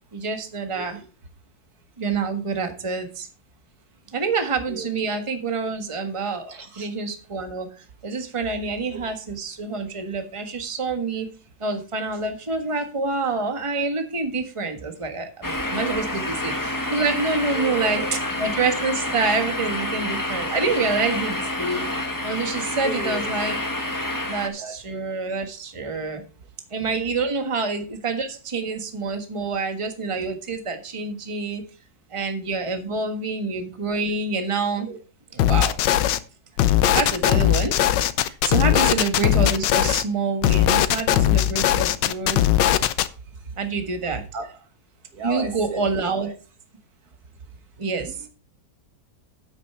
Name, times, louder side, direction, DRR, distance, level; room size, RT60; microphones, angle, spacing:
voice 1, 0.1-1.0 2.0-3.3 4.1-11.3 11.6-18.0 18.4-21.8 22.2-23.6 24.3-26.2 26.7-31.6 32.1-34.9 35.3-35.8 36.6-37.8 38.2-42.4 43.6-44.2 45.2-46.3 47.8-48.2, right 4 dB, 20° right, 1.4 m, -27 dB
voice 2, 0.7-1.1 4.7-4.9 6.5-6.9 8.9-9.0 15.7-16.2 17.5-18.2 22.8-23.3 24.6-25.0 27.4-27.5 34.9-35.0 38.7-39.0 44.3-44.6 45.1-46.3 48.0-48.3, right 4 dB, 60° right, 1.7 m, -35 dB
sound 1, 15.4-24.5, left 1 dB, 15° left, 1.1 m, -28 dB
sound 2, 35.4-36.2 36.6-40.0 40.4-43.1, left 12 dB, 85° left, 1.4 m, -19 dB
9.2 x 8.3 x 4.4 m
omnidirectional pair, 1.9 m